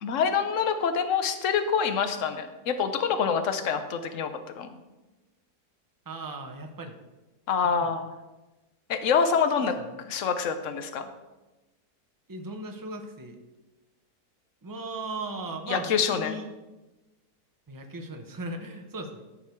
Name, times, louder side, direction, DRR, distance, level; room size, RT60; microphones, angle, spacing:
voice 1, 0.0-4.8 7.5-8.1 8.9-9.7 10.1-11.1 15.7-16.4, left 6 dB, 55° left, 9 dB, 1.1 m, -26 dB
voice 2, 6.0-7.0 7.8-7.9 9.5-9.6 12.3-13.4 14.6-16.5 17.7-19.2, right 2 dB, 15° right, 4 dB, 0.8 m, -37 dB
14.0 x 5.3 x 4.6 m, 1.1 s
omnidirectional pair, 1.7 m